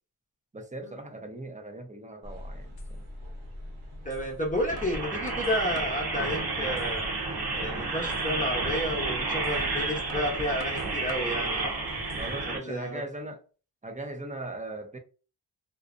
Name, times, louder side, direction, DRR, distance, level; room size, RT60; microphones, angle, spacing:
voice 1, 0.5-3.1 12.2-13.4 13.8-15.0, right 2 dB, 15° right, 0.6 m, -39 dB
sound 1, 2.2-2.3 2.8-2.9 4.1-4.2 4.8-6.1 6.6-7.1 7.5-7.6 8.1-8.3 9.4-9.6 10.1-11.4 11.9-12.5, left 2 dB, 55° left, 0.7 m, -45 dB
sound 2, 2.2-12.5, equal, 80° right, 0.9 m, -43 dB
voice 2, 4.0-7.1 7.5-11.9 12.6-13.0, equal, 15° left, 0.8 m, -31 dB
sound 3, 4.6-12.6, right 3 dB, 50° right, 0.8 m, -31 dB
2.4 x 2.0 x 2.4 m
cardioid pair, 50°, 47 cm